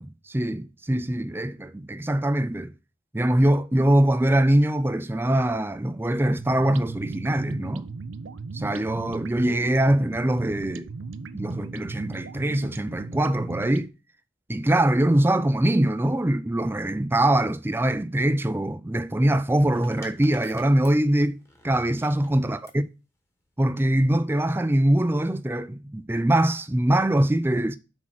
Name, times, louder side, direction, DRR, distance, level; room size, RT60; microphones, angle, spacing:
voice 1, 0.0-2.7 3.1-7.9 8.5-10.9 11.3-13.9 14.5-21.4 21.6-22.8 23.6-27.8, right 1 dB, 10° right, 0.4 m, -23 dB
sound 1, 6.2-13.9, right 4 dB, 80° right, 0.5 m, -38 dB
sound 2, 19.2-22.8 23.9-24.3, left 1 dB, 15° left, 1.2 m, -51 dB
6.2 x 4.4 x 5.9 m
head